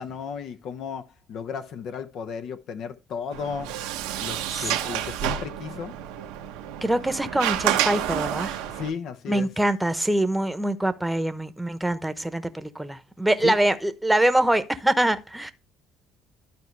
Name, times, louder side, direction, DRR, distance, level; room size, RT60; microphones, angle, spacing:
voice 1, 0.0-3.8 4.2-5.9 8.7-9.5 13.4-13.6, left 6 dB, 65° left, 0.8 m, -34 dB
Sliding door, 3.3-8.9, right 11 dB, 85° right, 0.9 m, -29 dB
voice 2, 6.8-8.6 9.3-15.5, right 1 dB, 5° right, 0.9 m, -24 dB
12.0 x 4.6 x 3.3 m
supercardioid pair, 75°, 0 cm